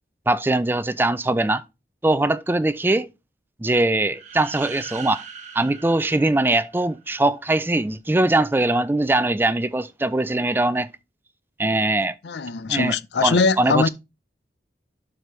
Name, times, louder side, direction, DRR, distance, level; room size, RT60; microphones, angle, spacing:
voice 1, 0.3-1.6 2.0-3.1 3.6-5.2 5.5-10.9 11.6-12.1 12.7-13.0 13.2-13.9, right 2 dB, 10° right, 0.3 m, -21 dB
sound 1, 4.1-7.0, right 6 dB, 40° right, 1.1 m, -40 dB
voice 2, 12.2-13.9, left 4 dB, 70° left, 0.5 m, -21 dB
12.0 x 5.0 x 3.1 m
head